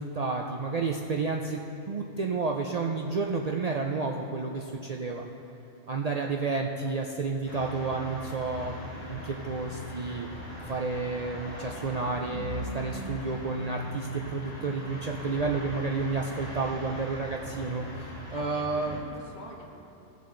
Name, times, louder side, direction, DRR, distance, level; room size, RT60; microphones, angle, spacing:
voice 1, 0.0-1.6 1.9-5.2 5.9-10.3 10.7-19.0, right 4 dB, 70° right, 1 dB, 0.3 m, -31 dB
sound 1, 7.5-19.0, equal, 30° left, 2.8 m, -40 dB
voice 2, 18.3-19.7, left 1 dB, 60° left, -1 dB, 1.4 m, -45 dB
16.5 x 6.7 x 3.8 m, 2.9 s
omnidirectional pair, 1.3 m